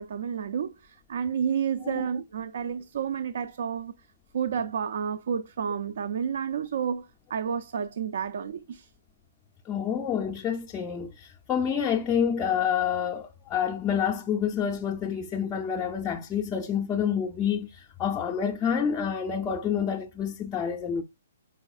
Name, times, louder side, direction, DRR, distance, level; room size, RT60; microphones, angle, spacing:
voice 1, 0.0-3.9 4.3-8.9, right 7 dB, 65° right, 0.3 m, -30 dB
voice 2, 9.7-21.0, left 8 dB, 15° left, 0.4 m, -28 dB
5.3 x 4.0 x 2.3 m
hypercardioid pair, 155°, 0 cm